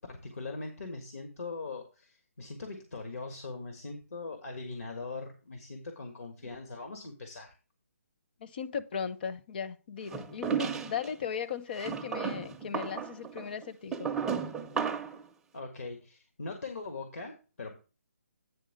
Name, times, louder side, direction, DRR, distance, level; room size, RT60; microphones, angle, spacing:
voice 1, 0.0-7.5 15.5-17.8, left 3 dB, 75° left, 1.7 m, -41 dB
voice 2, 8.4-14.1, left 7 dB, 40° left, 0.7 m, -37 dB
sound 1, 10.1-11.1 11.8-15.2, right 6 dB, 5° right, 0.4 m, -34 dB
9.1 x 3.6 x 6.5 m
hypercardioid pair, 155°, 8 cm